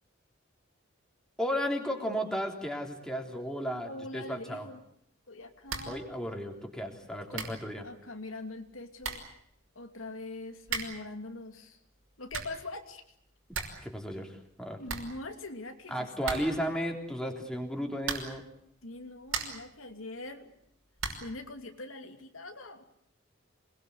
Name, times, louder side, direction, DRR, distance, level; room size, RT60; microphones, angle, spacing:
voice 1, 1.4-4.7 5.9-7.8 13.8-14.8 15.9-18.4, equal, 5° left, 1 dB, 3.5 m, -34 dB
voice 2, 3.8-4.8 5.3-6.1 7.3-7.5 7.8-9.2 9.7-11.8 12.2-13.0 14.8-16.6 18.8-20.5 21.1-22.8, left 2 dB, 90° left, 5 dB, 2.7 m, -43 dB
sound 1, 5.6-6.0 6.3-6.4 7.0-7.1 7.3-7.7 8.6-8.7 9.0-9.4 10.6-11.1 12.0-12.7 13.0-13.1 13.3-13.9 14.1-14.2 14.5-14.6 14.8-15.6 16.2-16.7 18.0-18.5 19.0-19.7 21.0-21.4, right 5 dB, 90° right, 5.6 m, -37 dB
27.5 x 21.0 x 8.3 m, 0.73 s
head